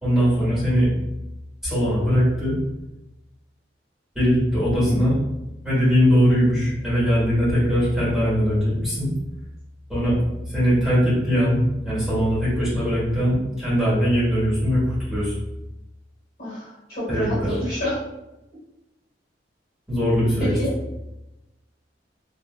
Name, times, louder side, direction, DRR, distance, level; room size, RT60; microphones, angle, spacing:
voice 1, 0.0-0.9 1.6-2.6 4.1-5.1 5.6-9.1 9.9-10.2 10.5-11.6 11.8-15.3 17.1-17.6 19.9-20.6, equal, ahead, -10 dB, 1.4 m, -20 dB
voice 2, 16.4-18.0 20.4-20.7, equal, 55° left, -7 dB, 1.3 m, -28 dB
2.7 x 2.5 x 2.3 m, 0.96 s
head